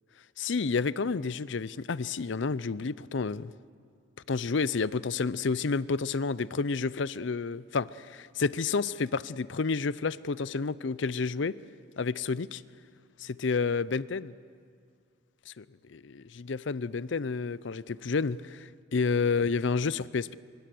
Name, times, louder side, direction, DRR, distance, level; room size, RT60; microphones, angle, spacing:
voice 1, 0.4-3.5 4.3-11.6 12.0-12.6 13.2-14.3 15.5-20.3, left 4 dB, 65° left, 18 dB, 0.5 m, -30 dB
24.5 x 23.0 x 7.7 m, 2.2 s
head